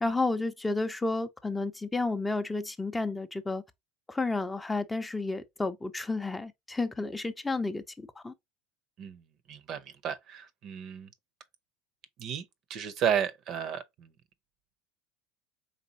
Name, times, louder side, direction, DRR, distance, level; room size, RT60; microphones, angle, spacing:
voice 1, 0.0-3.6 4.1-8.3, left 3 dB, 10° left, 0.5 m, -31 dB
voice 2, 9.5-11.1 12.2-12.4 12.7-14.1, right 8 dB, 50° right, 0.7 m, -32 dB
4.1 x 3.4 x 2.8 m
supercardioid pair, 110°, 0 cm